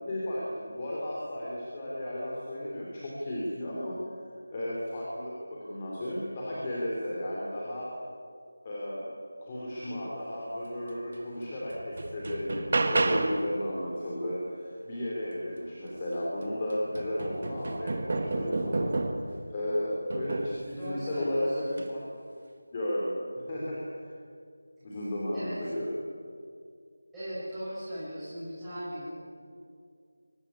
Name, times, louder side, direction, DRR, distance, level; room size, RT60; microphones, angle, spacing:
voice 1, 0.1-4.0 4.5-7.9 8.6-9.0 9.4-19.0 19.5-22.0 22.7-24.2 24.8-25.9, left 1 dB, 15° left, -5 dB, 3.0 m, -34 dB
sound 1, 11.1-11.2 11.7-13.5 15.9-16.0 16.4-19.4 20.1-20.6 21.7-21.9, right 2 dB, 30° right, 1.5 m, -31 dB
voice 2, 20.7-21.6 25.3-25.6 27.1-29.1, equal, 5° right, -16 dB, 7.7 m, -38 dB
23.5 x 18.5 x 9.8 m, 2.3 s
figure-of-eight pair, 180°, 0 cm